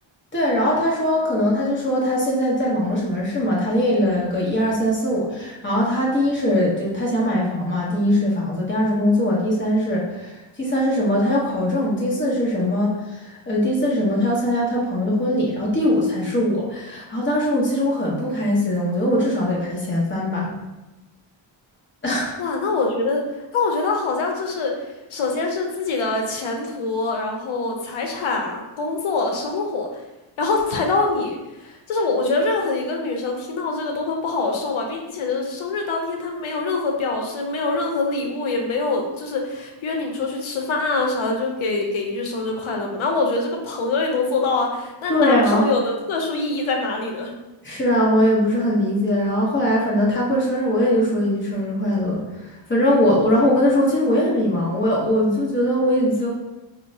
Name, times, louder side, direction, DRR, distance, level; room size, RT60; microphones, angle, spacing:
voice 1, 0.3-20.5 22.0-22.3 45.1-45.6 47.6-56.3, left 1 dB, 25° left, -4 dB, 0.8 m, -21 dB
voice 2, 22.4-23.2 23.5-24.7 25.1-30.0 30.4-47.3, left 3 dB, 80° left, 2 dB, 0.7 m, -24 dB
4.2 x 2.1 x 2.6 m, 1.0 s
wide cardioid pair, 145°, 48 cm